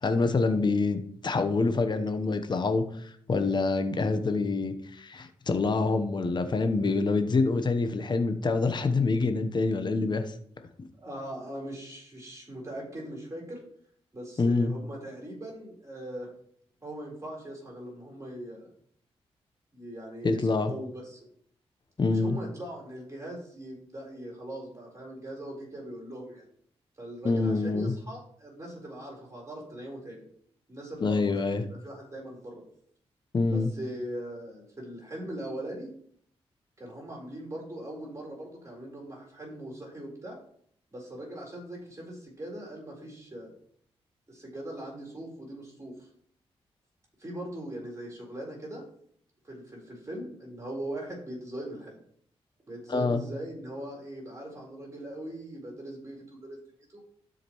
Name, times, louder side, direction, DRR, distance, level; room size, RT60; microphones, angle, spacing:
voice 1, 0.0-10.3 10.8-10.9 14.4-14.7 20.2-20.7 22.0-22.4 27.2-27.9 31.0-31.6 33.3-33.7 52.9-53.2, left 3 dB, 40° left, 8 dB, 0.9 m, -26 dB
voice 2, 11.0-13.6 14.1-16.3 16.8-18.7 19.7-21.2 22.1-26.4 27.0-30.2 30.7-32.6 33.5-35.9 36.8-40.4 40.9-43.5 44.3-46.1 47.2-48.8 49.4-52.0 52.7-57.0, right 1 dB, 30° right, -3 dB, 4.0 m, -40 dB
12.5 x 5.0 x 3.1 m, 0.62 s
cardioid pair, 65°, 11 cm